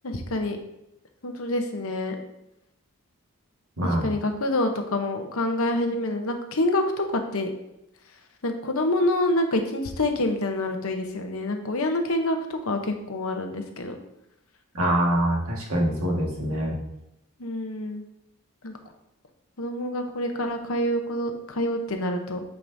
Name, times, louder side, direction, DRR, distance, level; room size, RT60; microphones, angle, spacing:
voice 1, 0.0-0.6 1.2-2.2 3.8-7.5 8.4-14.0 17.4-18.0 18.6-18.8 19.6-22.4, left 1 dB, 65° left, 5 dB, 0.9 m, -27 dB
voice 2, 14.7-16.8, right 1 dB, 70° right, -2 dB, 1.7 m, -24 dB
9.1 x 4.8 x 2.7 m, 0.86 s
head